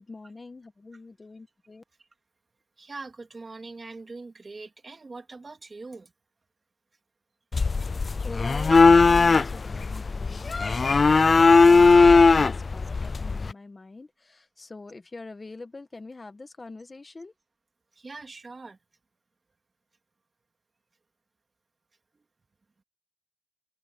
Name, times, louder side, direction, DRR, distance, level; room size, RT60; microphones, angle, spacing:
voice 1, 0.0-1.8 8.2-17.3, left 3 dB, 50° left, 1.5 m, -44 dB
voice 2, 2.8-6.1 18.0-18.8, right 3 dB, 60° right, 2.4 m, -42 dB
sound 1, 7.5-13.5, left 4 dB, 65° left, 0.4 m, -18 dB
cardioid pair, 50°, 0 cm